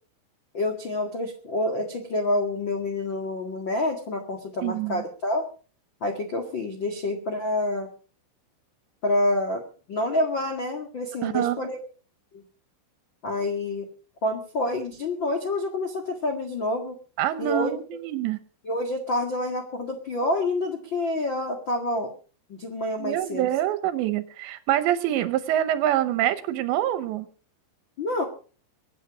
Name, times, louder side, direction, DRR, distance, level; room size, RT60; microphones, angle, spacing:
voice 1, 0.5-5.5 6.0-7.9 9.0-9.6 9.9-11.8 12.3-12.4 13.2-13.9 14.2-17.0 17.4-17.8 18.6-22.1 22.5-23.5 28.0-28.2, left 1 dB, 90° left, 2 dB, 1.0 m, -27 dB
voice 2, 4.6-5.0 11.2-11.6 17.2-18.4 23.0-27.3, right 12 dB, 75° right, 12 dB, 2.8 m, -25 dB
23.5 x 9.4 x 4.9 m, 0.39 s
omnidirectional pair, 5.8 m